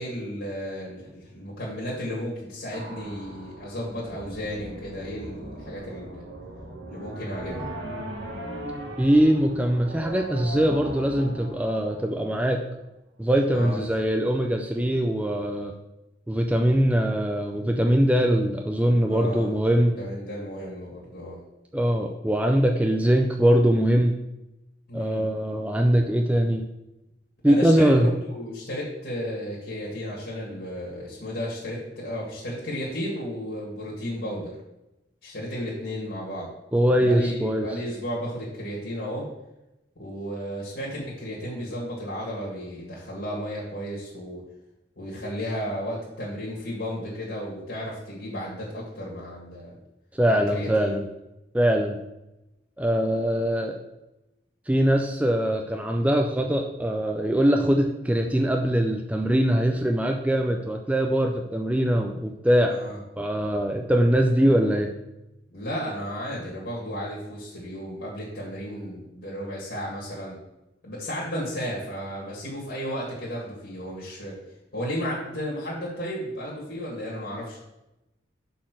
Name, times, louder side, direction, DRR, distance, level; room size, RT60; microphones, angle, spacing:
voice 1, 0.0-6.2 6.9-7.7 13.5-13.8 19.1-19.5 20.0-21.4 24.9-25.3 27.5-28.0 28.3-34.6 35.2-36.5 37.0-39.3 40.0-44.4 45.0-49.8 50.3-51.0 62.7-63.0 65.5-70.4 70.8-74.4 74.7-77.6, equal, 65° left, -6 dB, 2.0 m, -33 dB
sound 1, 2.7-12.8, right 1 dB, 85° right, 1.6 m, -39 dB
voice 2, 9.0-12.6 13.2-15.7 16.3-19.9 21.7-24.1 24.9-26.7 27.4-28.1 36.7-37.7 50.1-51.0 51.5-52.0 52.8-53.7 54.7-62.8 63.2-64.9, equal, 10° right, 2 dB, 0.4 m, -22 dB
5.8 x 4.3 x 6.2 m, 0.93 s
head